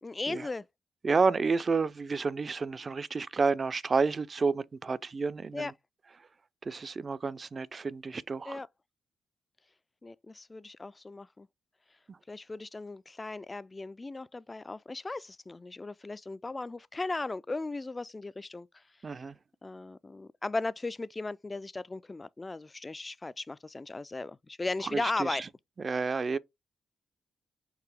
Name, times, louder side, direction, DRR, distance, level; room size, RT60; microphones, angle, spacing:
voice 1, 0.0-0.7 5.5-5.7 8.5-8.7 10.0-11.5 12.3-18.8 19.6-25.4, left 3 dB, 30° left, 0.3 m, -37 dB
voice 2, 1.0-5.7 6.7-8.6 19.0-19.3 24.9-25.4 25.8-26.4, right 4 dB, 45° right, 0.4 m, -30 dB
4.8 x 3.1 x 3.5 m
supercardioid pair, 50°, 0 cm